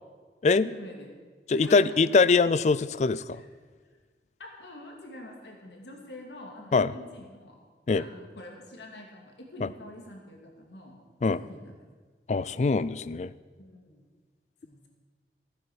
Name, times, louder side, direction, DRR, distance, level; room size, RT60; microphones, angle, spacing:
voice 1, 0.6-1.1 1.5-2.0 3.3-3.5 4.4-7.6 7.9-10.9 11.4-11.9 13.6-14.0 14.6-14.9, left 1 dB, 80° left, 1 dB, 2.5 m, -45 dB
voice 2, 1.5-3.4 6.7-6.9 7.9-8.0 9.6-9.7 11.2-11.4 12.3-13.3, left 4 dB, 40° left, 17 dB, 0.3 m, -23 dB
15.5 x 8.9 x 6.2 m, 1.5 s
head